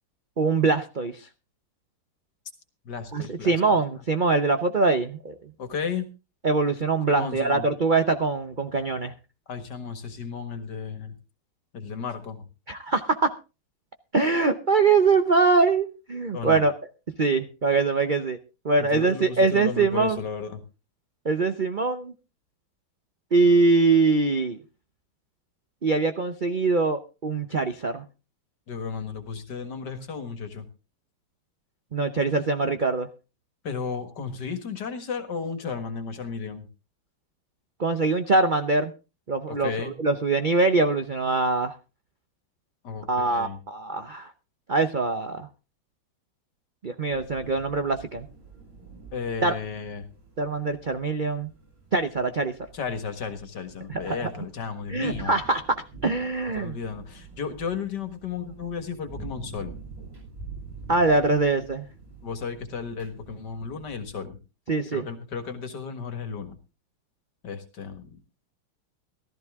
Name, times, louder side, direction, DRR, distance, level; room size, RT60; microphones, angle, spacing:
voice 1, 0.4-1.3 3.1-5.3 6.4-9.1 12.7-13.3 14.1-16.7 17.2-18.4 18.6-20.2 21.2-22.1 23.3-24.6 25.8-28.0 31.9-33.1 37.8-38.9 39.3-41.8 43.1-44.3 44.7-45.5 46.8-48.3 49.4-49.5 50.4-51.5 51.9-52.5 53.9-54.2 54.9-55.6 56.0-56.7 60.9-61.9 64.7-65.1, right 3 dB, 85° right, 8 dB, 0.4 m, -23 dB
voice 2, 2.9-3.8 5.6-6.1 7.1-7.7 9.5-11.1 11.7-12.4 16.3-16.6 18.8-20.6 28.7-30.7 33.6-36.7 39.5-39.9 42.8-43.6 49.1-50.1 52.7-55.4 56.5-59.7 62.2-64.4 64.9-66.6 67.4-68.2, left 6 dB, 55° left, 9 dB, 2.2 m, -34 dB
sound 1, 47.1-64.1, right 4 dB, 65° right, 8.2 m, -46 dB
15.0 x 13.5 x 3.6 m, 0.32 s
omnidirectional pair, 2.3 m